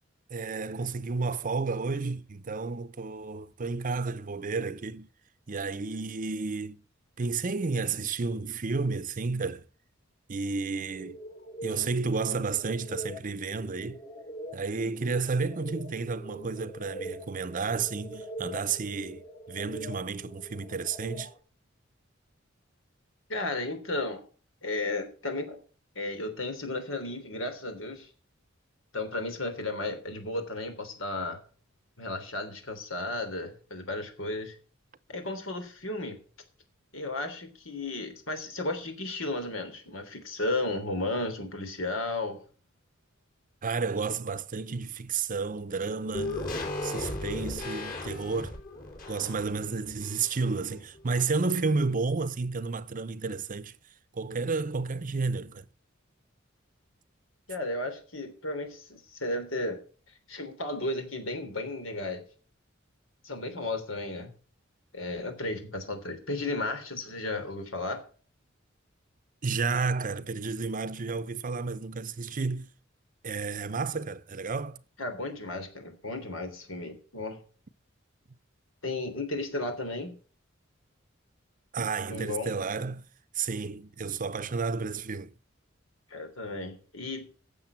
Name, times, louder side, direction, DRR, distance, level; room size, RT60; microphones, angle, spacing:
voice 1, 0.3-5.1 5.5-6.8 7.2-9.6 10.3-11.2 11.6-14.0 14.5-21.3 43.6-46.4 46.8-48.5 49.1-53.8 54.1-55.7 69.4-72.7 73.2-74.8 81.7-83.1 83.3-85.3, right 4 dB, 40° right, 0.7 m, -31 dB
sound 1, 10.9-21.4, right 1 dB, 30° left, 1.4 m, -43 dB
voice 2, 23.3-24.2 24.6-25.6 25.9-28.1 28.9-31.4 32.0-34.6 35.1-36.2 36.9-42.4 57.5-59.8 60.3-62.2 63.2-64.3 64.9-68.0 75.0-77.4 78.8-80.1 82.1-82.5 86.1-87.3, left 2 dB, 90° left, 3.3 m, -34 dB
sound 2, 46.1-50.6 50.9-51.0, left 2 dB, 45° left, 3.8 m, -36 dB
12.0 x 7.5 x 7.4 m
head